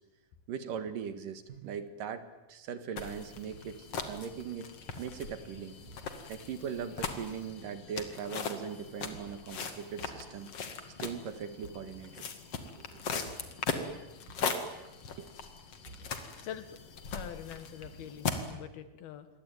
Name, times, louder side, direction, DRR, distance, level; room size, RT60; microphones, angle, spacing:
voice 1, 0.5-5.8 6.3-10.5 11.0-12.3 12.8-12.9 15.2-15.3, right 7 dB, 65° right, 10 dB, 3.1 m, -40 dB
sound 1, 1.5-1.8 3.5-3.8 5.9-6.1 9.1-9.4 10.0-10.3 11.6-12.2 13.3-13.5 14.3-14.6 15.9-16.1 17.8-18.1, right 4 dB, 85° right, 0.8 m, -52 dB
sound 2, 3.0-18.5, left 5 dB, 45° left, 2.8 m, -39 dB
voice 2, 16.4-16.7 17.1-19.3, left 10 dB, 80° left, 11 dB, 3.5 m, -44 dB
28.0 x 22.5 x 9.2 m, 1.0 s
omnidirectional pair, 4.4 m